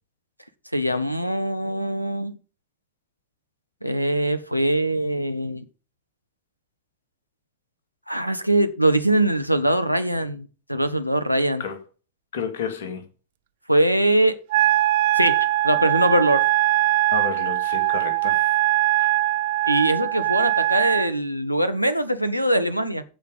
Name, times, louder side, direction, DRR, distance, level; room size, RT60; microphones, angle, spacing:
voice 1, 0.7-2.4 3.8-5.6 8.1-11.6 13.7-14.4 15.1-15.4 15.6-16.5 19.7-23.0, right 1 dB, 90° right, 1.2 m, -22 dB
voice 2, 12.3-13.0 17.1-18.5, left 6 dB, 60° left, 3.2 m, -31 dB
Wind instrument woodwind instrument, 14.5-21.1, right 16 dB, 55° right, 0.5 m, -21 dB
15.5 x 5.8 x 5.5 m
figure-of-eight pair, 90°, 0 cm